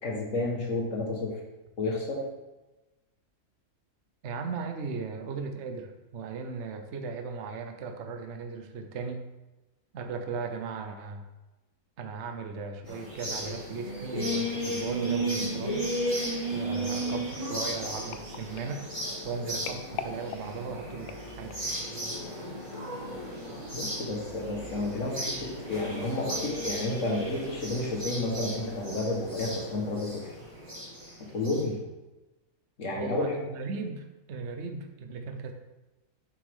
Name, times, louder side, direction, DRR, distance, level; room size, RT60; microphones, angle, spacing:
voice 1, 0.0-1.4 1.8-2.3 23.7-30.3 31.3-31.8 32.8-33.4, left 2 dB, 55° left, -1 dB, 1.8 m, -31 dB
voice 2, 4.2-9.3 9.9-11.3 12.0-15.9 16.5-18.8 19.2-21.6 32.9-35.5, right 5 dB, 55° right, 6 dB, 1.0 m, -37 dB
sound 1, 12.9-31.6, right 1 dB, 20° right, 3.0 m, -35 dB
sound 2, 16.8-21.8 22.4-22.6 22.9-23.0, left 7 dB, 80° left, 1.1 m, -44 dB
7.9 x 6.2 x 3.6 m, 1.1 s
omnidirectional pair, 1.6 m